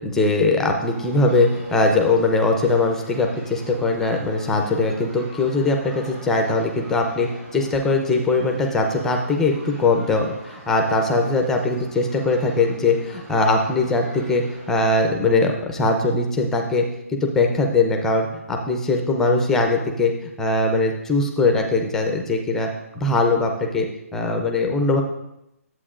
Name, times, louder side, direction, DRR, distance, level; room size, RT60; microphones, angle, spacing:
voice 1, 0.0-16.8 17.1-23.9 24.1-25.0, left 3 dB, 5° left, 3 dB, 0.6 m, -21 dB
sound 1, 0.8-14.8, right 1 dB, 20° right, 1.6 m, -44 dB
11.0 x 7.9 x 2.5 m, 0.84 s
hypercardioid pair, 160°, 8 cm